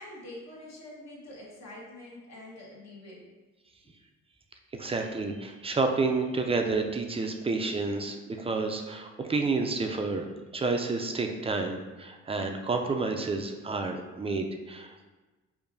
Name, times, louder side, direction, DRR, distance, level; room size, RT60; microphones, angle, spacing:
voice 1, 0.0-3.2 5.0-5.1, left 1 dB, 60° left, -4 dB, 1.2 m, -45 dB
voice 2, 4.7-10.3 10.5-15.1, right 3 dB, 20° right, 4 dB, 0.4 m, -30 dB
4.7 x 2.5 x 2.6 m, 1.2 s
cardioid pair, 90°, 30 cm